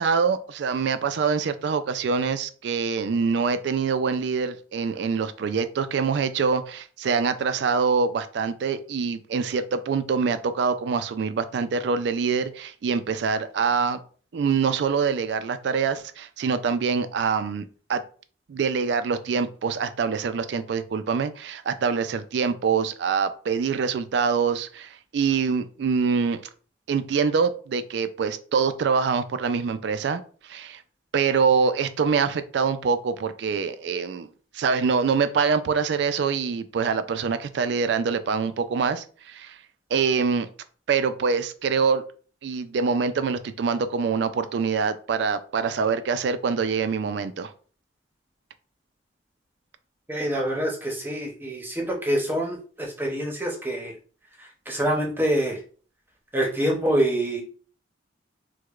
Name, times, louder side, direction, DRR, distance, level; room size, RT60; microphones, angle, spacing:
voice 1, 0.0-14.0 14.3-18.0 18.5-26.4 26.9-30.8 31.1-34.3 34.5-39.6 39.9-40.5 40.9-42.0 42.4-47.5, right 5 dB, 60° right, 11 dB, 0.3 m, -25 dB
voice 2, 50.1-53.9 54.4-55.6 56.3-57.4, right 1 dB, 10° right, -1 dB, 0.6 m, -26 dB
4.6 x 2.1 x 2.4 m, 0.41 s
head